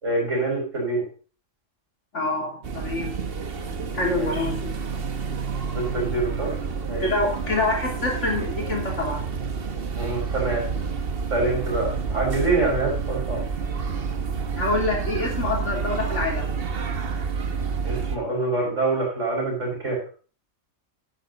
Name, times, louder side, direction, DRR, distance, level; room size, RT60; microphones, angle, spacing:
voice 1, 0.0-1.0 4.1-4.3 5.7-6.5 6.8-7.1 9.9-10.6 11.3-13.4 17.8-20.0, right 2 dB, 75° right, -2 dB, 5.9 m, -25 dB
voice 2, 2.1-3.1 3.9-4.7 7.0-9.2 14.6-16.5, left 2 dB, 70° left, -1 dB, 3.6 m, -26 dB
sound 1, 2.6-18.2, right 5 dB, 50° right, 1.3 m, -29 dB
11.0 x 9.2 x 4.1 m, 0.39 s
omnidirectional pair, 1.3 m